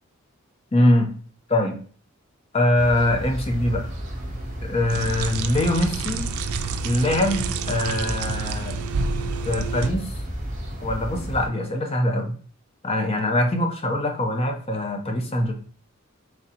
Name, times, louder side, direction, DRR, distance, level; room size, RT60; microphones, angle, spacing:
voice 1, 0.7-1.1 1.5-1.8 2.5-3.8 4.6-6.3 6.8-8.8 9.5-10.1 10.8-12.4 12.8-15.5, left 1 dB, 25° left, 3 dB, 0.5 m, -23 dB
sound 1, 2.7-11.5, equal, 35° right, 0.9 m, -32 dB
sound 2, 4.9-9.9, right 6 dB, 85° right, 0.4 m, -30 dB
3.8 x 3.2 x 2.8 m, 0.43 s
head